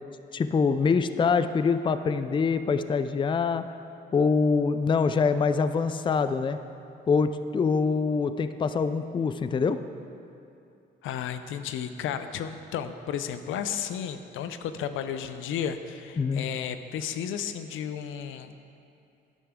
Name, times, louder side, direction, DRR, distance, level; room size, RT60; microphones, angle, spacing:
voice 1, 0.3-3.7 4.1-6.6 7.1-9.8 16.2-16.5, left 5 dB, 25° left, 11 dB, 0.4 m, -24 dB
voice 2, 11.0-18.5, left 8 dB, 85° left, 9 dB, 0.6 m, -33 dB
11.5 x 9.9 x 3.6 m, 2.7 s
cardioid pair, 90°, 20 cm